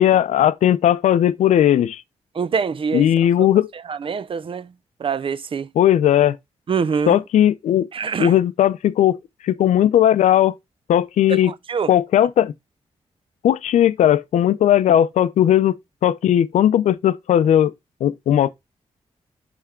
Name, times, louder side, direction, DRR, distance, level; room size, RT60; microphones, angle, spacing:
voice 1, 0.0-2.0 2.9-3.7 5.8-6.4 7.1-7.9 8.2-9.2 9.4-10.6 10.9-11.5 11.9-12.5 13.4-17.7 18.0-18.5, left 11 dB, 85° left, 0.5 m, -17 dB
voice 2, 2.3-3.1 3.4-3.5 3.9-4.7 5.0-5.7 6.7-7.2 7.9-8.3 11.3-11.9, right 6 dB, 50° right, 0.5 m, -24 dB
10.0 x 3.5 x 3.7 m
cardioid pair, 70°, 12 cm